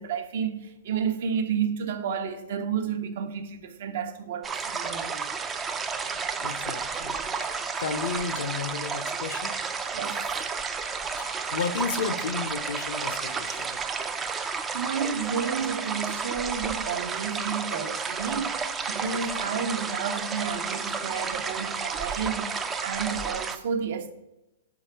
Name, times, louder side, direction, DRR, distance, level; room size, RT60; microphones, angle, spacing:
voice 1, 0.0-5.3 9.9-10.2 14.5-24.1, right 6 dB, 60° right, 0.8 m, -31 dB
sound 1, 4.4-23.6, right 5 dB, 15° right, 0.4 m, -31 dB
voice 2, 6.4-9.6 11.1-13.8, left 5 dB, 70° left, 0.6 m, -33 dB
5.9 x 4.7 x 4.5 m
hypercardioid pair, 155°, 0 cm